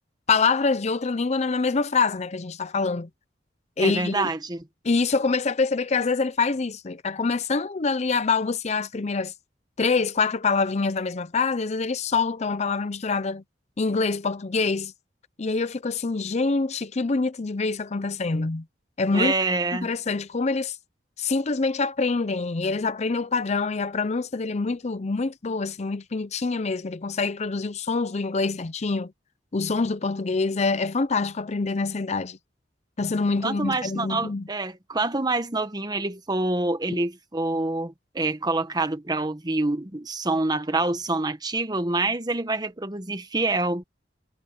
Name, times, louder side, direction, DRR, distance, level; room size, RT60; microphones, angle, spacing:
voice 1, 0.3-3.1 3.8-4.3 4.8-9.3 9.8-13.4 13.8-14.9 15.4-18.6 19.0-19.3 19.8-20.8 21.2-29.1 29.5-32.4 33.0-34.5 36.9-37.0, left 4 dB, 40° left, 0.6 m, -25 dB
voice 2, 3.8-4.6 19.1-19.9 33.4-43.8, right 2 dB, 25° right, 1.3 m, -26 dB
head